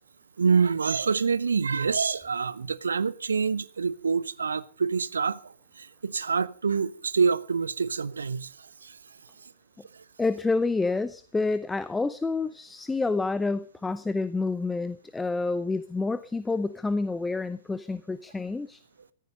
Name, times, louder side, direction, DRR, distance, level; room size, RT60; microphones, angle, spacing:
voice 1, 0.4-9.0, right 5 dB, 70° right, 0.9 m, -26 dB
voice 2, 10.2-18.8, left 3 dB, 10° left, 0.7 m, -28 dB
15.0 x 14.0 x 5.3 m
figure-of-eight pair, 105°, 0 cm